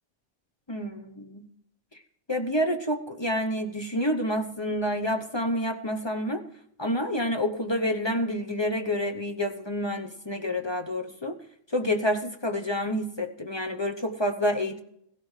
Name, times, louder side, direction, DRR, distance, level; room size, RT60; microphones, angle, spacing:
voice 1, 0.7-1.5 2.3-6.4 6.8-11.4 11.7-14.8, left 1 dB, 25° left, 5 dB, 0.6 m, -28 dB
16.5 x 16.0 x 3.2 m, 0.73 s
omnidirectional pair, 1.4 m